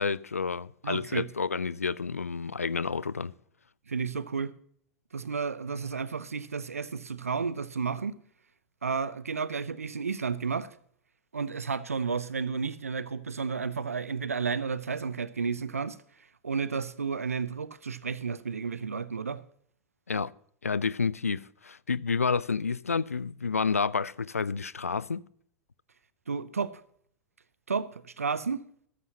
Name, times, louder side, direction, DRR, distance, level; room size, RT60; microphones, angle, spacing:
voice 1, 0.0-3.3 20.1-20.3 20.6-25.3, left 5 dB, 90° left, 0.3 m, -30 dB
voice 2, 0.8-1.3 3.9-4.5 5.1-8.1 8.8-10.7 11.3-16.0 16.4-19.4 26.3-26.8 27.7-28.6, right 5 dB, 85° right, 0.6 m, -32 dB
13.5 x 13.0 x 2.9 m
figure-of-eight pair, 90°, 8 cm